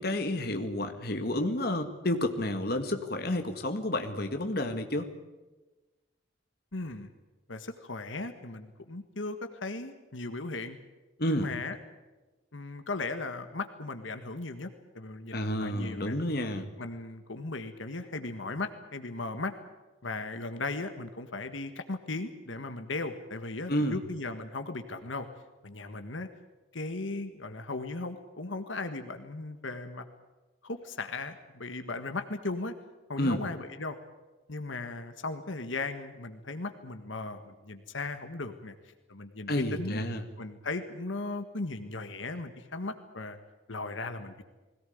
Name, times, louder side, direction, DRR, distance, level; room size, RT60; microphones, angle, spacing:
voice 1, 0.0-5.1 11.2-11.5 15.3-16.7 23.7-24.0 33.2-33.4 39.5-40.2, left 1 dB, 50° left, 6 dB, 1.9 m, -30 dB
voice 2, 6.7-7.1 7.5-10.8 11.3-11.8 12.5-14.7 14.9-16.2 16.8-19.5 20.0-25.3 25.6-26.3 26.7-30.0 30.6-32.7 33.1-34.0 34.5-38.7 39.1-40.0 40.4-43.4 43.7-44.4, left 3 dB, 80° left, 8 dB, 1.6 m, -37 dB
21.0 x 18.0 x 9.4 m, 1.2 s
head